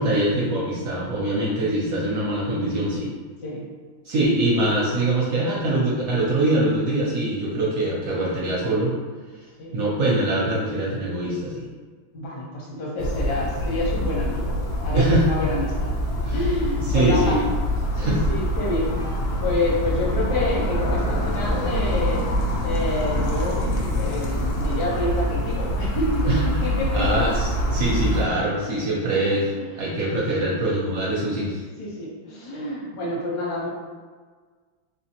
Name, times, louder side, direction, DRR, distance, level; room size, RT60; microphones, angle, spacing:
voice 1, 0.0-3.1 4.0-8.9 9.7-11.7 14.9-15.2 16.2-16.5 16.7-17.5 18.0-18.2 26.2-26.6 26.9-31.6, right 1 dB, 70° right, -5 dB, 0.8 m, -23 dB
voice 2, 12.1-14.6 14.8-15.9 16.3-17.2 17.9-18.9 19.4-22.2 22.6-27.2 28.5-29.8 31.8-33.7, left 2 dB, 60° left, -4 dB, 1.3 m, -28 dB
sound 1, 13.0-28.3, equal, 90° left, 0.8 m, -25 dB
3.4 x 3.3 x 2.8 m, 1.5 s
omnidirectional pair, 2.3 m